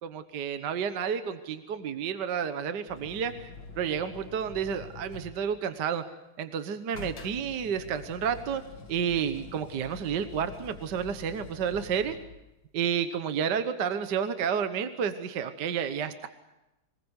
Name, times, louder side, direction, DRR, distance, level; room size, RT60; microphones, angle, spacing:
voice 1, 0.0-6.0 6.4-8.6 8.9-12.2 12.7-16.3, right 7 dB, 55° right, 9 dB, 1.6 m, -31 dB
sound 1, 2.9-5.6 6.9-12.5 15.4-15.5, left 4 dB, 50° left, 2.3 m, -46 dB
25.0 x 20.5 x 8.1 m, 0.95 s
omnidirectional pair, 2.3 m